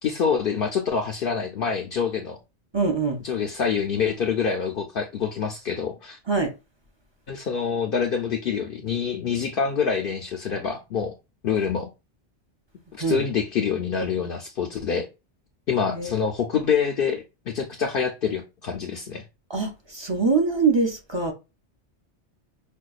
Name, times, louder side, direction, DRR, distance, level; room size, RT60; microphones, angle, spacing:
voice 1, 0.0-2.4 3.2-6.2 7.3-11.1 11.4-11.9 13.0-15.1 15.7-19.2, left 6 dB, 60° left, 0.6 m, -26 dB
voice 2, 2.7-3.2 6.3-6.5 13.0-13.2 15.9-16.2 19.5-21.3, right 4 dB, 30° right, 0.6 m, -23 dB
5.3 x 2.3 x 2.3 m
omnidirectional pair, 1.2 m